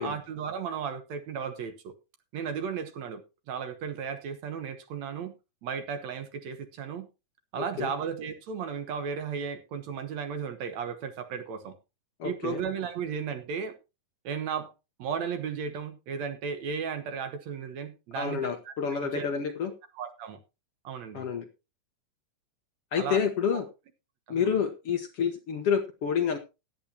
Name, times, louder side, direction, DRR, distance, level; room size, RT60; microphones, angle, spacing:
voice 1, 0.0-1.9 2.3-3.2 3.5-5.3 5.6-7.1 7.5-11.8 12.2-13.8 14.2-14.7 15.0-19.3 20.0-20.4 20.8-21.3 23.0-23.2 24.3-24.6, right 6 dB, 65° right, 2.3 m, -35 dB
voice 2, 7.6-7.9 12.2-12.6 18.1-19.7 21.1-21.5 22.9-23.7 24.3-26.4, left 7 dB, 60° left, 1.8 m, -28 dB
15.5 x 10.5 x 2.9 m
omnidirectional pair, 3.6 m